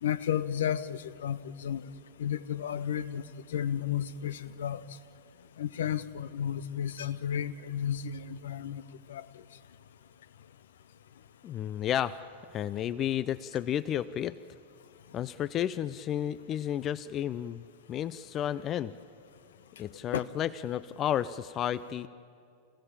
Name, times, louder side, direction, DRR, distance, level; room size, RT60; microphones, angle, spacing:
voice 1, 0.0-1.8 2.2-4.8 5.6-8.8 9.1-9.3 20.1-20.2, left 9 dB, 65° left, 16 dB, 0.8 m, -33 dB
voice 2, 11.4-12.1 12.5-14.4 15.1-17.6 17.9-18.9 19.8-22.1, left 10 dB, 30° left, 18 dB, 0.5 m, -32 dB
29.5 x 16.0 x 8.6 m, 2.5 s
figure-of-eight pair, 90°, 0 cm